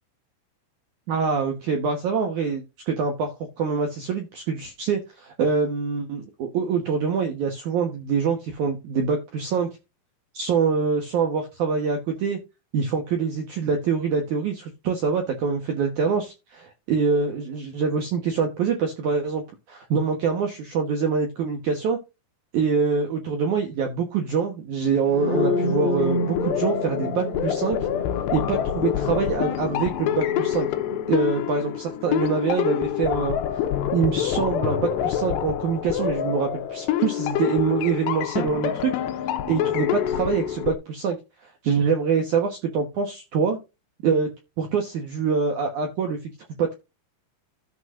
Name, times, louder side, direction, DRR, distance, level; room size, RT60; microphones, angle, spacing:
voice 1, 1.1-3.3 3.6-9.7 10.3-12.4 12.7-22.0 22.5-27.8 28.3-30.7 31.1-33.4 33.9-38.9 39.5-41.2 41.4-43.6 44.0-44.3 44.6-46.3 46.6-46.7, right 5 dB, 85° right, 4 dB, 1.7 m, -25 dB
sound 1, 25.0-32.9, left 3 dB, 45° left, 2.4 m, -30 dB
sound 2, 26.0-40.7, left 10 dB, 80° left, 2.8 m, -27 dB
13.5 x 6.4 x 2.5 m, 0.25 s
omnidirectional pair, 5.4 m